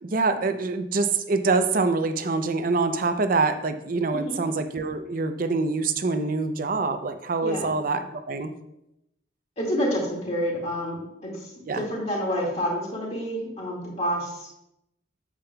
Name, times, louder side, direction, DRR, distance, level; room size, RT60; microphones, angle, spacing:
voice 1, 0.0-8.5 11.7-11.8, right 3 dB, 50° right, 9 dB, 0.5 m, -25 dB
voice 2, 7.4-7.8 9.6-11.4 11.7-14.5, equal, 35° left, -3 dB, 2.0 m, -28 dB
8.6 x 7.4 x 2.3 m, 0.83 s
head